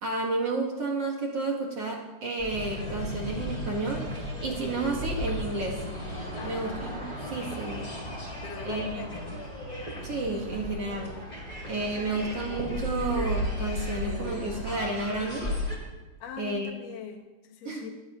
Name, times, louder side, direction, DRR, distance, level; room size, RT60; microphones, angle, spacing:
voice 1, 0.0-5.8 6.4-7.0 7.3-8.0 8.7-9.0 10.0-11.2 11.7-15.5 16.4-16.7 17.7-17.9, right 3 dB, 50° right, -2 dB, 1.9 m, -31 dB
sound 1, 2.4-15.8, left 1 dB, 10° left, 5.0 m, -35 dB
voice 2, 6.4-6.8 7.3-7.5 8.4-9.4 16.2-17.9, left 7 dB, 60° left, 1 dB, 2.5 m, -41 dB
22.0 x 18.5 x 2.6 m, 1.2 s
omnidirectional pair, 5.2 m